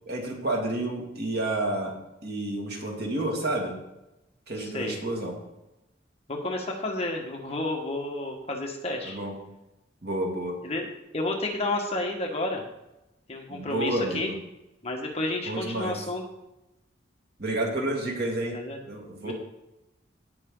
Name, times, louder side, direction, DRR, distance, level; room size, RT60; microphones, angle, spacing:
voice 1, 0.1-1.9 2.2-3.8 4.5-5.4 9.0-9.4 10.0-10.6 13.5-14.4 15.5-16.0 17.4-18.6 18.9-19.3, right 1 dB, 55° right, 0 dB, 2.3 m, -30 dB
voice 2, 4.6-5.0 6.3-9.2 10.6-10.9 11.1-12.6 13.3-14.3 14.8-16.2 18.5-18.8 19.2-19.3, left 2 dB, 30° left, 1 dB, 1.6 m, -31 dB
17.0 x 5.9 x 3.9 m, 0.94 s
head